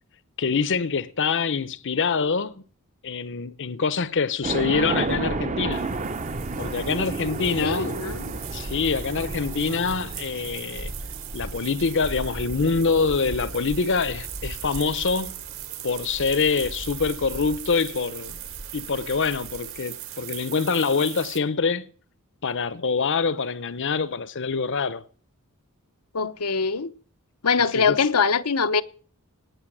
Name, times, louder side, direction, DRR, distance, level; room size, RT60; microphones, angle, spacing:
voice 1, 0.4-2.6 3.0-5.8 6.6-8.0 8.5-10.9 11.3-15.4 15.8-18.4 18.7-21.9 22.4-25.0 27.7-28.0, left 5 dB, 55° left, 0.8 m, -25 dB
sound 1, 4.4-19.6, right 2 dB, 35° right, 0.9 m, -33 dB
sound 2, 5.7-21.4, right 12 dB, 65° right, 2.6 m, -40 dB
voice 2, 7.6-8.4 26.1-26.9 27.4-28.8, left 5 dB, 85° left, 0.9 m, -23 dB
18.5 x 6.9 x 9.9 m
head